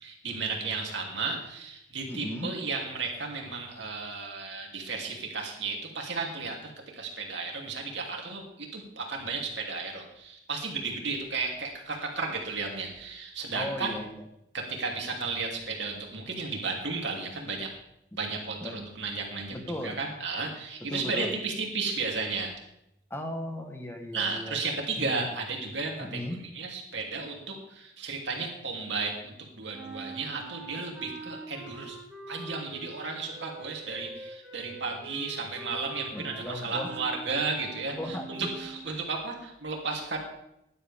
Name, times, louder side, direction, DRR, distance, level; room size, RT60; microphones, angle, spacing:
voice 1, 0.0-14.0 14.5-17.7 18.2-19.5 19.8-22.5 24.1-26.3 26.5-32.0 32.3-40.2, right 4 dB, 75° right, 0 dB, 2.9 m, -34 dB
voice 2, 2.1-2.5 13.5-14.2 18.6-18.8 19.5-20.0 20.8-21.3 23.1-24.6 25.0-25.2 26.0-26.4 36.1-37.0 38.0-38.5 38.9-39.0, left 1 dB, 15° left, 4 dB, 1.2 m, -36 dB
sound 1, 29.7-38.9, right 3 dB, 5° right, 3.8 m, -44 dB
16.5 x 11.0 x 3.5 m, 0.81 s
head